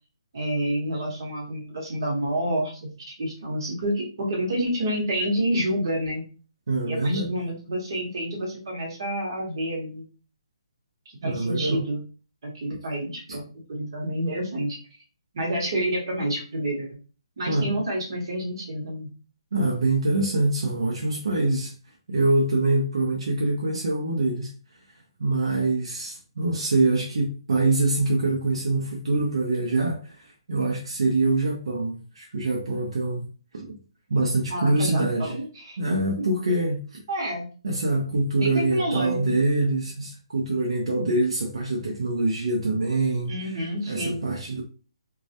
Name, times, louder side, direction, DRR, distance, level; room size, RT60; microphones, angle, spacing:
voice 1, 0.3-6.2 6.9-10.0 11.1-12.0 12.4-14.8 15.3-16.9 17.4-19.1 34.5-35.8 37.1-37.4 38.4-39.4 43.3-44.2, right 1 dB, 50° right, 1.0 m, -28 dB
voice 2, 6.7-7.3 11.2-11.8 13.3-13.4 17.5-17.7 19.5-21.7 22.1-24.5 25.2-33.2 33.5-33.8 34.1-35.3 35.8-37.0 37.6-43.6 43.9-44.6, right 2 dB, 75° right, 0.5 m, -24 dB
2.3 x 2.0 x 2.7 m
hypercardioid pair, 175°, 3 cm